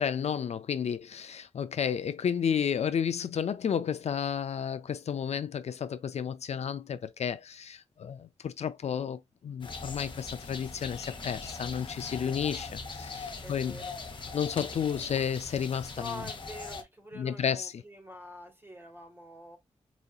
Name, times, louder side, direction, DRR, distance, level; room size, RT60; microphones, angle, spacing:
voice 1, 0.0-13.8 14.3-16.1 17.1-17.7, left 7 dB, 70° left, 0.4 m, -32 dB
sound 1, 9.6-16.8, left 4 dB, 45° left, 0.7 m, -41 dB
voice 2, 13.4-14.0 15.9-19.6, left 1 dB, 20° right, 1.4 m, -45 dB
5.0 x 2.7 x 2.3 m
wide cardioid pair, 165°, 12 cm